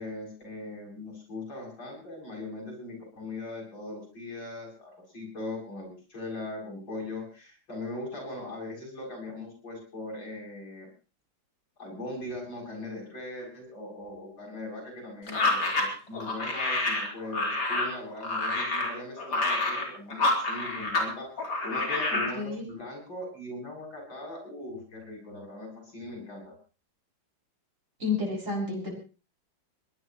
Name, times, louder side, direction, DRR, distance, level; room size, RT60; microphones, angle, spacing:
voice 1, 0.0-10.9 11.8-26.6, left 2 dB, 70° left, 0 dB, 8.6 m, -40 dB
sound 1, 15.3-21.1 21.4-22.3, left 2 dB, 55° left, 4.7 m, -28 dB
voice 2, 22.1-22.6 28.0-28.9, left 4 dB, 40° right, -2 dB, 7.2 m, -31 dB
22.5 x 18.0 x 3.1 m, 0.35 s
omnidirectional pair, 2.1 m